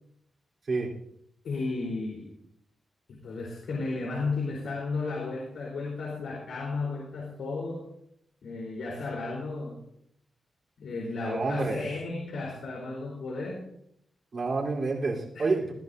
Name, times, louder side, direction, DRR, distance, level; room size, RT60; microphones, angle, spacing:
voice 1, 1.4-2.3 3.1-7.8 8.4-9.8 10.8-13.6 15.3-15.5, left 3 dB, 90° left, -3 dB, 4.0 m, -34 dB
voice 2, 11.2-11.9 14.3-15.7, right 3 dB, 45° right, -2 dB, 3.7 m, -28 dB
21.0 x 14.5 x 2.7 m, 0.74 s
wide cardioid pair, 145°, 0 cm